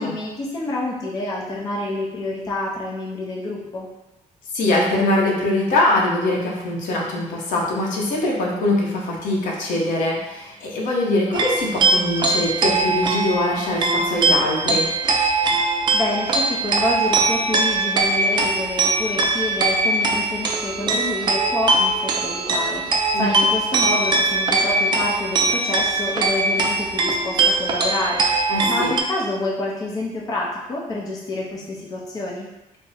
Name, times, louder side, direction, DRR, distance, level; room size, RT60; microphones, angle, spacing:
voice 1, 0.0-3.9 15.9-28.3 28.7-32.5, left 2 dB, 30° left, -3 dB, 0.5 m, -28 dB
voice 2, 4.5-14.9 23.1-23.3 28.5-28.9, left 1 dB, 85° left, -2 dB, 0.8 m, -22 dB
sound 1, 11.3-29.0, right 3 dB, 35° right, 0.3 m, -21 dB
3.5 x 2.0 x 4.1 m, 0.98 s
cardioid pair, 180°, 13 cm